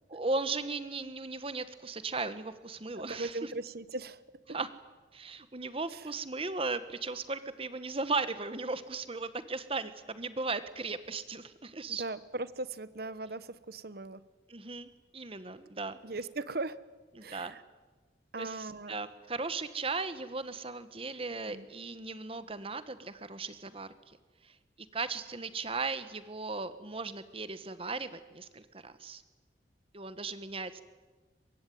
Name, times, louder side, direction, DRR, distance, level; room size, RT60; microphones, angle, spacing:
voice 1, 0.1-3.5 4.5-4.7 5.1-12.0 14.5-16.0 17.2-17.6 18.4-24.2 24.4-24.5 24.9-29.2 29.9-30.8, right 3 dB, 30° right, 12 dB, 1.1 m, -37 dB
voice 2, 2.9-4.2 5.9-6.1 11.9-14.2 16.0-16.8 17.2-17.6 18.3-18.9 21.5-21.6, right 2 dB, 55° right, 15 dB, 1.1 m, -39 dB
24.0 x 22.0 x 9.3 m, 1.3 s
head